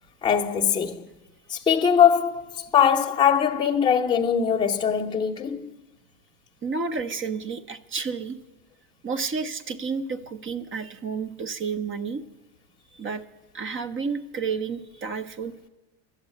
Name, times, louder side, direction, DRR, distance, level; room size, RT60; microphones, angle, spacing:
voice 1, 0.2-1.1 1.5-5.7, left 8 dB, 10° left, 0.7 m, -21 dB
voice 2, 6.6-8.4 9.0-12.2 12.9-13.2 13.5-15.5, right 5 dB, 25° right, 0.7 m, -31 dB
12.0 x 8.0 x 8.3 m
supercardioid pair, 115°, 49 cm